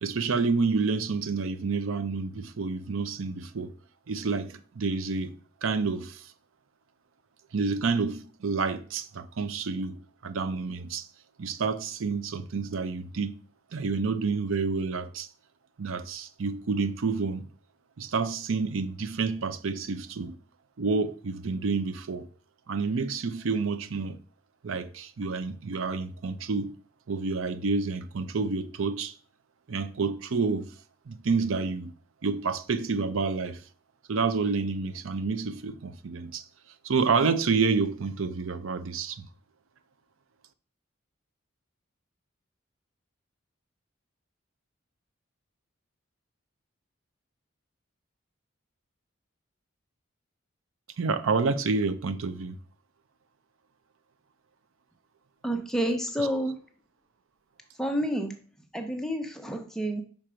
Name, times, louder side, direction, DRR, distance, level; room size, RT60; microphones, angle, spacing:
voice 1, 0.0-3.7 4.1-5.3 5.6-6.3 7.5-10.0 10.2-11.1 11.4-13.4 13.7-15.3 15.8-17.5 18.0-20.4 20.8-22.3 22.7-24.2 24.6-26.7 27.1-29.1 29.7-30.7 31.1-31.9 32.2-33.6 34.1-36.4 36.8-39.3 51.0-52.6, right 4 dB, 75° right, 0.5 m, -29 dB
voice 2, 55.4-56.6 57.8-58.3 58.7-60.0, equal, ahead, 0.7 m, -29 dB
5.7 x 4.4 x 5.0 m
head